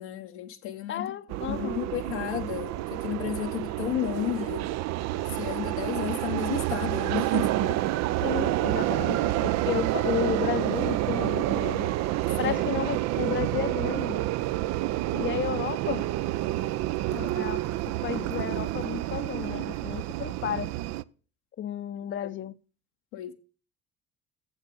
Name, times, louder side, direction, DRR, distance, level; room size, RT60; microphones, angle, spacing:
voice 1, 0.0-1.2 1.5-4.6 5.3-7.8 12.5-12.8 22.2-22.3 23.1-23.3, left 11 dB, 75° left, 0.9 m, -33 dB
voice 2, 0.9-1.9 8.2-14.2 15.1-16.1 17.1-20.7 21.6-22.6, left 10 dB, 35° left, 0.6 m, -33 dB
sound 1, 1.3-21.0, right 15 dB, 55° right, 0.5 m, -28 dB
7.5 x 6.2 x 6.8 m
hypercardioid pair, 60°, 33 cm